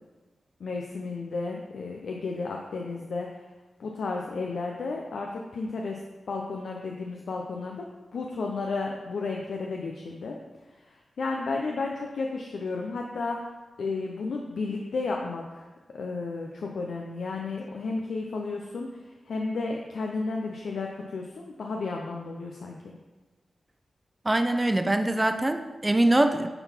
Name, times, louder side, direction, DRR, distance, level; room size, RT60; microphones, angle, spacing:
voice 1, 0.6-3.4 3.8-6.0 6.3-7.8 8.1-10.4 10.8-13.4 13.8-15.7 15.9-22.9, left 3 dB, 80° left, 0 dB, 0.6 m, -33 dB
voice 2, 24.2-26.5, right 1 dB, 20° right, 7 dB, 0.6 m, -23 dB
8.9 x 4.0 x 4.4 m, 1.2 s
cardioid pair, 50°, 0 cm